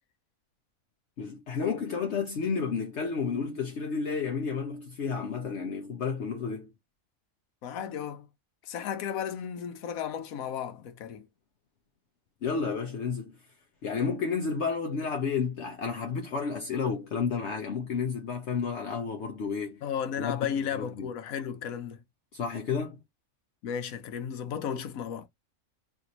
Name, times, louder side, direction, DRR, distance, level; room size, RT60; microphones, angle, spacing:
voice 1, 1.2-6.7 12.4-13.3 13.8-19.8 20.2-20.5 20.7-20.9 22.3-23.0, left 5 dB, 60° left, 0.9 m, -31 dB
voice 2, 7.6-8.3 8.6-11.3 19.8-22.0 23.6-25.3, left 8 dB, 85° left, 1.2 m, -34 dB
3.4 x 2.5 x 2.9 m
omnidirectional pair, 1.4 m